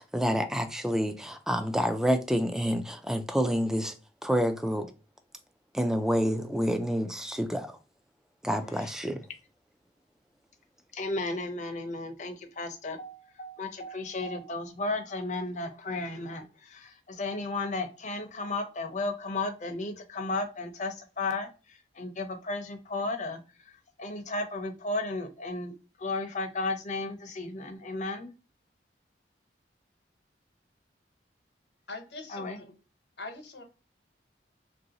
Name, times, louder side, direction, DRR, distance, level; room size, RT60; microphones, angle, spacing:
voice 1, 0.0-3.9 4.2-4.9 5.7-7.8 8.4-9.3, equal, 5° right, 0.3 m, -28 dB
voice 2, 8.5-8.9 10.9-21.5 22.0-23.4 24.0-25.7 26.0-28.3 32.3-32.6, left 2 dB, 45° left, 0.6 m, -34 dB
voice 3, 31.9-32.7 33.2-33.6, left 3 dB, 80° left, 1.0 m, -42 dB
3.0 x 2.6 x 2.8 m
head